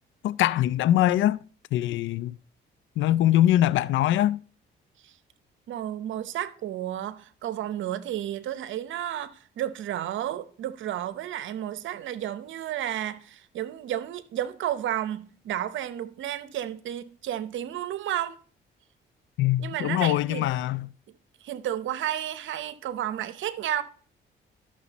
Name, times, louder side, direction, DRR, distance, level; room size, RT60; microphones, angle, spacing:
voice 1, 0.2-1.4 1.7-2.4 3.0-4.4 19.4-20.9, left 13 dB, 75° left, 0.4 m, -23 dB
voice 2, 5.7-18.4 19.6-20.5 21.4-23.8, right 11 dB, 75° right, 0.8 m, -32 dB
12.5 x 6.2 x 4.1 m
cardioid pair, 90°, 20 cm